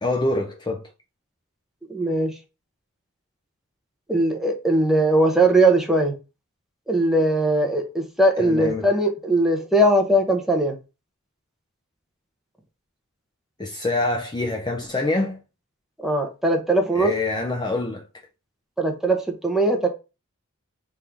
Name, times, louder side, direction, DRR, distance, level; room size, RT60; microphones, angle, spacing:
voice 1, 0.0-0.9 8.4-8.9 13.6-15.4 16.9-18.0, left 2 dB, 20° left, 0.5 m, -25 dB
voice 2, 1.9-2.3 4.1-6.1 6.9-10.8 16.0-17.1 18.8-19.9, right 1 dB, ahead, 0.9 m, -20 dB
3.6 x 2.8 x 4.6 m
head